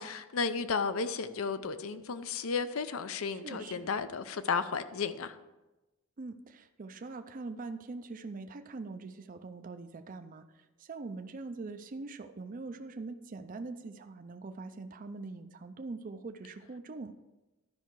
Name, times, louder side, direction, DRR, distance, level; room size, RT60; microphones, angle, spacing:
voice 1, 0.0-5.4, left 5 dB, 75° left, 12 dB, 0.6 m, -33 dB
voice 2, 3.3-3.9 6.2-17.1, right 3 dB, 40° right, 9 dB, 0.4 m, -43 dB
12.5 x 5.6 x 4.6 m, 1.1 s
head